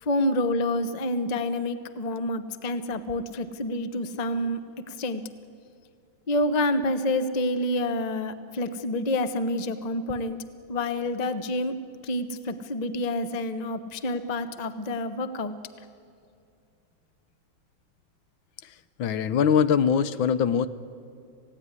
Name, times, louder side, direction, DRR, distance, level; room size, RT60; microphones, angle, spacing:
voice 1, 0.0-4.6 4.9-5.2 6.3-10.4 10.7-11.7 12.0-15.5, left 1 dB, 30° left, 10 dB, 0.7 m, -28 dB
voice 2, 19.0-20.7, left 7 dB, 75° left, 14 dB, 1.5 m, -22 dB
27.0 x 17.0 x 9.7 m, 2.5 s
omnidirectional pair, 2.2 m